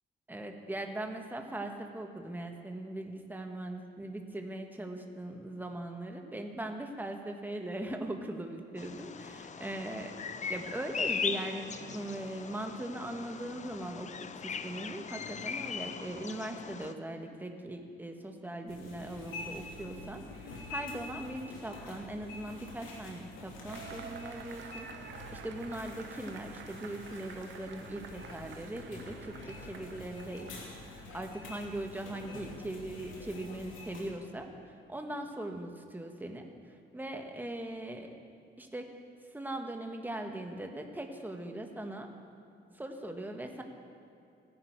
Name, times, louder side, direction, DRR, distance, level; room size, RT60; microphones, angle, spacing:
voice 1, 0.3-10.1 10.5-24.9 25.3-38.1 38.6-38.9 39.3-42.1 42.7-43.6, right 1 dB, 10° right, 3 dB, 1.4 m, -40 dB
Bird vocalization bird call bird song, 8.8-16.9, left 6 dB, 35° left, 0.6 m, -39 dB
sound 1, 18.7-34.1, left 2 dB, 85° left, 2.8 m, -47 dB
Cheering / Applause / Crowd, 23.7-30.9, right 7 dB, 65° right, 1.0 m, -49 dB
16.5 x 10.5 x 4.6 m, 2.7 s
cardioid pair, 90°, 20 cm